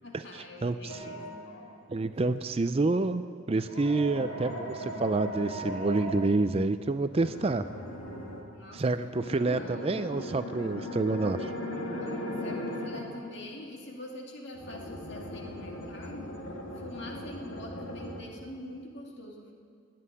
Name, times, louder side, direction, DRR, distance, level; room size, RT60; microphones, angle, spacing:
voice 1, 0.0-1.2 8.5-10.0 11.7-16.4 16.7-19.5, left 1 dB, 55° left, 0 dB, 2.3 m, -45 dB
voice 2, 0.6-1.0 1.9-3.2 3.5-7.7 8.7-11.5, right 3 dB, 30° right, 11 dB, 0.4 m, -28 dB
sound 1, 0.9-1.8 3.6-6.2 7.1-8.4 9.1-13.2 14.5-18.2, equal, 75° left, 2.3 m, -38 dB
19.0 x 7.7 x 9.8 m, 2.2 s
head